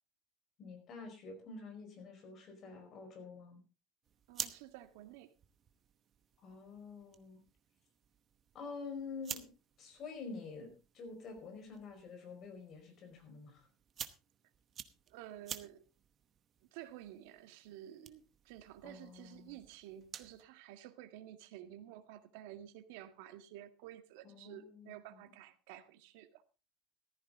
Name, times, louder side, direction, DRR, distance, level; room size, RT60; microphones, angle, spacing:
voice 1, 0.6-3.6 6.4-7.4 8.5-9.5 9.8-13.7 18.8-19.6 24.2-25.3, left 4 dB, 30° left, 4 dB, 4.8 m, -48 dB
sound 1, 4.0-20.4, right 9 dB, 25° right, 0.9 m, -51 dB
voice 2, 4.3-5.3 15.1-15.8 16.7-26.4, right 12 dB, 80° right, 9 dB, 1.8 m, -52 dB
15.0 x 13.5 x 3.8 m, 0.32 s
cardioid pair, 180°, 0 cm